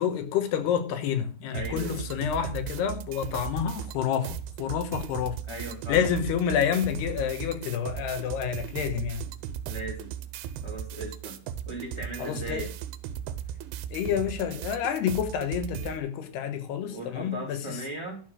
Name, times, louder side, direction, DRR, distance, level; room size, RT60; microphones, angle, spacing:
voice 1, 0.0-5.4 5.9-9.3 12.2-12.7 13.9-17.8, left 8 dB, 90° left, 3.3 m, -29 dB
voice 2, 1.5-2.0 5.5-6.0 9.7-10.1 10.6-11.4 11.7-12.7 16.9-18.2, right 1 dB, 5° left, 3.8 m, -37 dB
sound 1, 1.5-16.0, right 9 dB, 85° right, 2.8 m, -37 dB
12.0 x 6.6 x 6.2 m
omnidirectional pair, 4.5 m